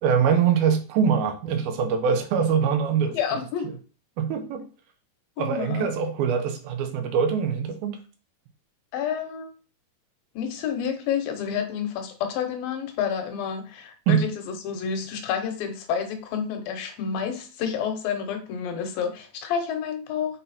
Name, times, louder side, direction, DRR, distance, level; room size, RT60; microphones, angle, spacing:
voice 1, 0.0-3.4 3.6-3.7 4.2-4.7 5.4-8.0 14.1-14.2, right 7 dB, 80° right, 2.8 m, -23 dB
voice 2, 3.1-3.7 5.4-5.9 8.9-9.5 10.4-20.4, left 7 dB, 75° left, 2.6 m, -29 dB
6.4 x 4.2 x 4.2 m
omnidirectional pair, 4.3 m